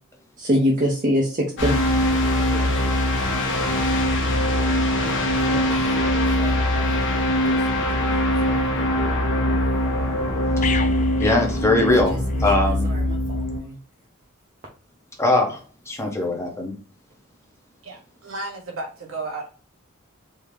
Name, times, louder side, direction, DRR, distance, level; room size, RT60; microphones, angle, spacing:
voice 1, 0.4-2.7 3.1-3.5 4.9-5.7 6.4-6.5 6.9-7.1 7.5-8.6 10.6-10.7 11.9-12.0 12.8-13.8, equal, 40° right, -1 dB, 0.6 m, -27 dB
sound 1, 1.6-13.6, left 1 dB, 60° left, 1.0 m, -22 dB
sound 2, 10.6-12.5 12.8-13.0, left 6 dB, 35° left, 0.3 m, -33 dB
voice 2, 11.2-12.9 15.2-15.6 15.9-16.7, left 2 dB, 15° left, 1 dB, 0.8 m, -21 dB
voice 3, 17.8-19.5, right 3 dB, 70° right, 1 dB, 1.1 m, -33 dB
3.5 x 2.7 x 3.1 m, 0.37 s
head